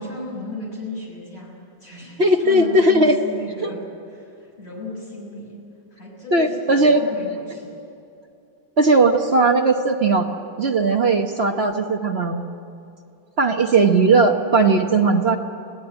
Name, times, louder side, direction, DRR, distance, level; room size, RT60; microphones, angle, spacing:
voice 1, 0.0-3.8 4.1-5.6 5.9-7.8, left 2 dB, 30° left, -3 dB, 6.7 m, -34 dB
voice 2, 2.2-3.2 3.6-3.7 6.3-7.0 8.8-10.3 10.6-12.4 13.4-15.4, right 3 dB, 40° right, 3 dB, 0.9 m, -17 dB
25.0 x 16.5 x 9.1 m, 2.6 s
omnidirectional pair, 2.3 m